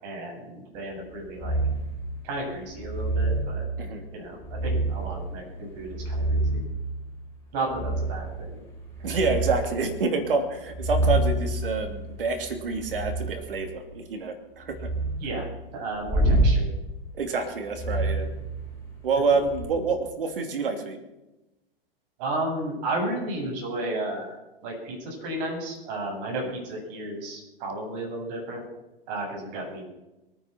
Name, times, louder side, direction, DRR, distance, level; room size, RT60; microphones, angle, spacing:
voice 1, 0.0-1.6 2.2-3.6 4.1-6.6 7.5-8.6 15.2-15.5 15.7-16.6 22.2-24.4 24.6-28.6 29.1-29.8, right 2 dB, 45° right, 0 dB, 7.8 m, -33 dB
sound 1, 1.4-1.9 2.8-3.5 4.4-5.1 5.7-6.8 7.7-8.3 8.8-9.7 10.6-13.4 14.7-15.2 16.1-16.5 17.7-18.9 19.4-19.7, right 1 dB, 10° left, 6.1 m, -27 dB
voice 2, 9.0-14.9 17.1-18.3 19.0-21.0 26.4-26.5, right 4 dB, 65° right, 6 dB, 3.0 m, -27 dB
23.0 x 9.5 x 6.1 m, 0.99 s
figure-of-eight pair, 100°, 29 cm